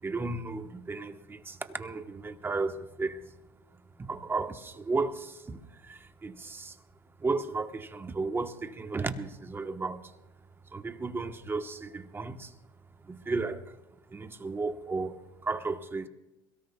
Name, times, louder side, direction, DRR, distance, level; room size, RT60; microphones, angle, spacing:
voice 1, 0.0-3.3 4.0-6.8 7.2-10.2 10.7-12.6 13.0-13.8 14.1-16.1, right 3 dB, 15° right, 1.2 m, -34 dB
23.0 x 17.5 x 2.3 m
supercardioid pair, 95°, 13 cm